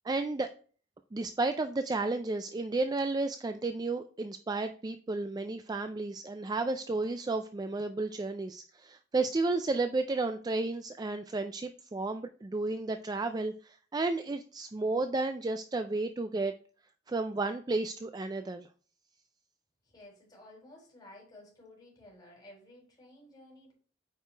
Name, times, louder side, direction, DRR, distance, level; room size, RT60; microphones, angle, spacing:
voice 1, 0.0-0.5 1.1-16.5 17.1-18.7, right 3 dB, 20° right, 8 dB, 0.3 m, -32 dB
voice 2, 19.8-23.7, left 1 dB, 25° left, -2 dB, 4.0 m, -54 dB
8.9 x 4.9 x 3.3 m, 0.42 s
head